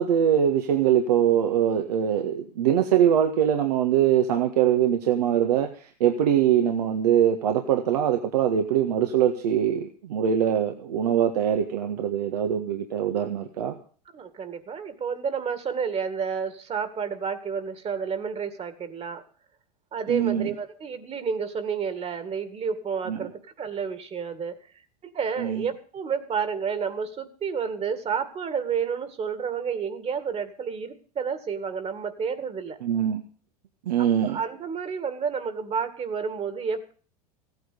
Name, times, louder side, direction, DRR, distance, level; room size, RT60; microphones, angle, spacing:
voice 1, 0.0-13.8 20.1-20.5 23.1-23.3 25.4-25.7 32.8-33.2 33.9-34.4, right 9 dB, 70° right, 4 dB, 1.7 m, -23 dB
voice 2, 14.1-19.2 19.9-24.6 25.0-32.8 34.0-36.9, right 6 dB, 30° right, 11 dB, 2.2 m, -30 dB
16.0 x 9.3 x 6.9 m, 0.42 s
hypercardioid pair, 90°, 21 cm